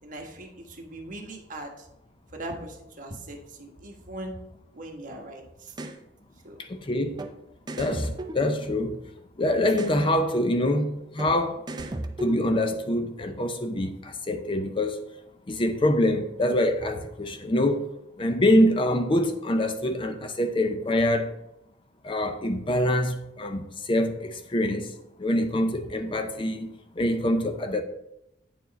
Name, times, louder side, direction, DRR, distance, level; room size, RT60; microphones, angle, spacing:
voice 1, 0.0-1.9 2.3-4.4 4.7-5.8 6.4-6.6, right 1 dB, 45° right, 1.2 m, -40 dB
sound 1, 5.7-6.0 7.2-7.3 7.7-9.1 9.7-10.0 11.2-11.3 11.7-12.8, right 2 dB, 25° right, 0.5 m, -36 dB
voice 2, 6.7-7.2 7.8-9.0 9.4-11.6 12.2-15.0 15.5-17.9 18.2-21.3 22.0-24.9 25.2-26.7 27.0-27.8, left 1 dB, 30° left, 0.5 m, -25 dB
8.8 x 4.6 x 4.0 m
head